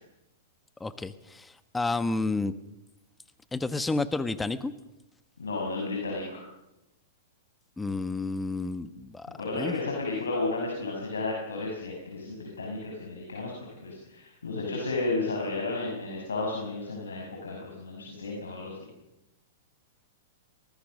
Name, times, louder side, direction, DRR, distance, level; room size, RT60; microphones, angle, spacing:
voice 1, 0.8-2.5 3.5-4.7 7.8-9.7, left 3 dB, 10° left, 13 dB, 1.1 m, -31 dB
voice 2, 5.4-6.4 9.4-13.5 13.8-18.7, left 3 dB, 90° left, -1 dB, 6.3 m, -33 dB
24.5 x 19.5 x 6.5 m, 0.94 s
hypercardioid pair, 120°, 0 cm